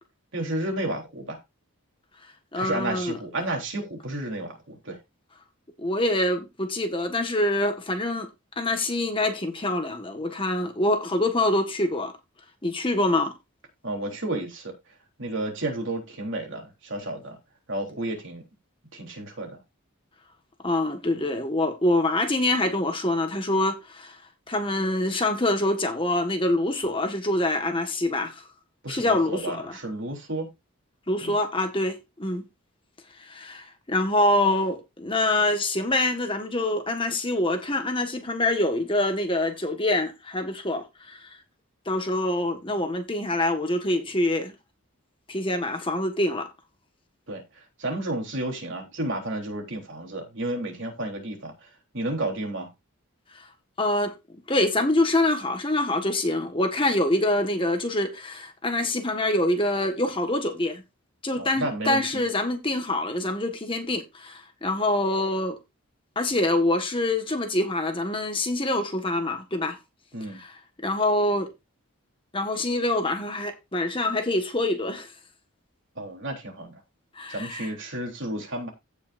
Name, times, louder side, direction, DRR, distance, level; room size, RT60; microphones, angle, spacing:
voice 1, 0.3-1.4 2.5-5.0 13.8-14.7 15.2-17.4 17.7-18.4 18.9-19.6 28.8-30.5 31.2-31.4 47.3-47.4 47.8-51.7 51.9-52.7 61.4-62.0 70.1-70.4 76.0-76.8 77.3-78.7, right 1 dB, 55° right, 3.6 m, -31 dB
voice 2, 2.5-3.2 5.8-8.3 8.6-12.1 12.6-13.3 20.6-24.2 24.5-28.4 28.9-29.8 31.1-32.4 33.2-41.4 41.8-44.5 45.3-46.5 53.3-53.5 53.8-54.1 54.5-60.8 61.2-65.6 66.1-69.8 70.3-71.5 72.3-75.1 77.1-77.7, left 1 dB, 25° left, 1.5 m, -25 dB
16.5 x 5.7 x 2.6 m
head